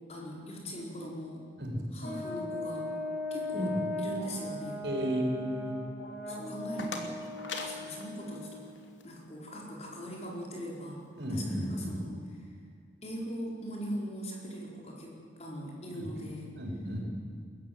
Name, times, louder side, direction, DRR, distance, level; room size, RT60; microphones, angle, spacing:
voice 1, 0.1-1.4 1.9-2.9 3.3-3.7 4.0-4.8 6.3-7.1 7.6-8.6 9.0-11.0 11.3-12.1 13.0-16.5, equal, 35° left, -1 dB, 4.5 m, -40 dB
Brass instrument, 2.0-8.7, left 2 dB, 65° left, 6.0 m, -38 dB
voice 2, 4.8-5.7 11.2-12.0 15.9-16.1 16.5-17.0, equal, 70° right, 1 dB, 5.0 m, -33 dB
sound 1, 6.4-9.1, left 3 dB, 85° left, 2.7 m, -42 dB
21.5 x 14.5 x 9.4 m, 2.2 s
head